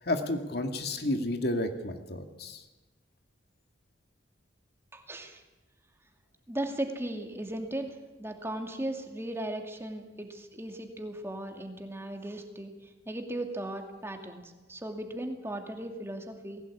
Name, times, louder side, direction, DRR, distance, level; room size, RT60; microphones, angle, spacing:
voice 1, 0.0-2.6, left 1 dB, 65° left, 5 dB, 2.3 m, -31 dB
voice 2, 4.9-5.4 6.5-12.7 13.1-16.6, right 1 dB, 15° right, 4 dB, 2.4 m, -37 dB
20.0 x 16.5 x 8.6 m, 1.1 s
head